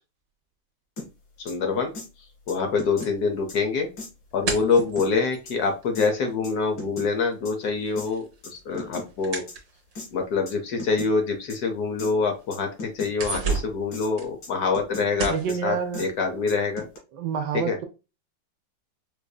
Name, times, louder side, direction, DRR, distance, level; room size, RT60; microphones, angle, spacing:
sound 1, 1.0-1.1 1.5-1.6 1.9-2.1 2.5-3.1 3.5-3.6 4.0-4.1 4.5-5.1 5.5-5.6 6.0-6.1 6.4-7.1 7.5-7.6 8.0-8.1 8.4-9.1 9.5-9.6 10.0-10.1 10.5-10.6 10.8-11.1 11.5-11.6 12.0-12.1 12.5-13.1 13.5-13.6 13.9-14.1 14.4-15.1 15.5-15.6 15.9-16.1 16.5-17.0, left 3 dB, 90° left, 2.3 m, -37 dB
voice 1, 1.4-1.9 2.5-3.9 4.3-8.3 8.5-9.4 10.1-15.3 15.6-16.8 17.5-17.8, left 4 dB, 65° left, 1.1 m, -25 dB
sound 2, 3.0-6.7 7.0-10.2 10.9-11.0 11.5-11.6 12.0-12.5 12.9-14.9 15.2-15.6, right 4 dB, 55° right, 1.3 m, -34 dB
voice 2, 15.3-16.1 17.1-17.8, right 7 dB, 70° right, 1.2 m, -28 dB
4.8 x 2.6 x 2.2 m
omnidirectional pair, 2.0 m